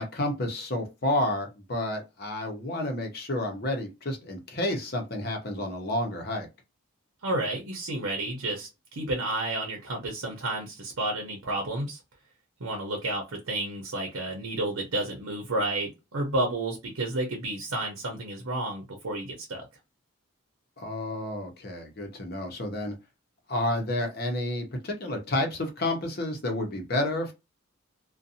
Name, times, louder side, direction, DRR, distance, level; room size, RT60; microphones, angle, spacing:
voice 1, 0.0-6.5 20.8-22.9 23.5-27.3, left 1 dB, 45° left, 0.7 m, -30 dB
voice 2, 7.2-12.0 12.6-19.7, right 2 dB, 85° right, 0.8 m, -31 dB
2.6 x 2.2 x 2.7 m
head